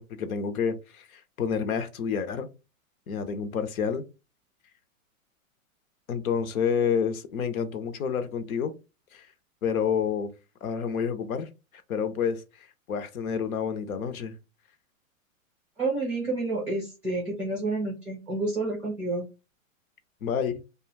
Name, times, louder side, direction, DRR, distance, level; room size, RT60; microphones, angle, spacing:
voice 1, 0.0-2.5 3.1-4.0 6.1-8.7 9.1-9.3 9.6-10.3 10.6-11.5 11.9-12.4 12.9-14.4 20.2-20.6, left 7 dB, 80° left, 0.7 m, -29 dB
voice 2, 15.8-19.3, right 2 dB, 5° right, 0.5 m, -29 dB
2.4 x 2.3 x 3.1 m
hypercardioid pair, 165°, 42 cm